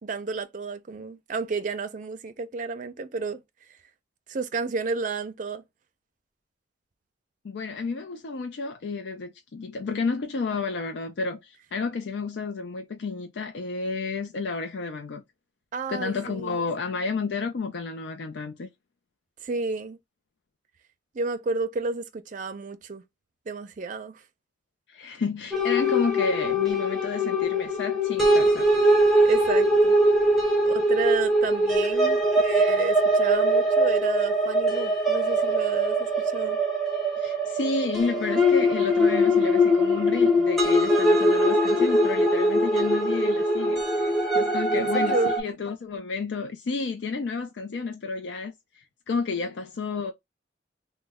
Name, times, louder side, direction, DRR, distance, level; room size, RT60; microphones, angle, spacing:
voice 1, 0.0-3.4 4.3-5.6 15.7-16.6 19.4-20.0 21.1-23.0 23.5-24.2 29.2-30.0 30.7-36.6 44.8-45.3, right 4 dB, 45° right, 0.4 m, -31 dB
voice 2, 7.4-15.2 15.9-18.7 24.9-28.7 31.8-32.1 37.2-50.1, left 4 dB, 70° left, 0.4 m, -31 dB
sound 1, 25.5-45.4, equal, ahead, 0.8 m, -22 dB
3.0 x 2.1 x 3.5 m
head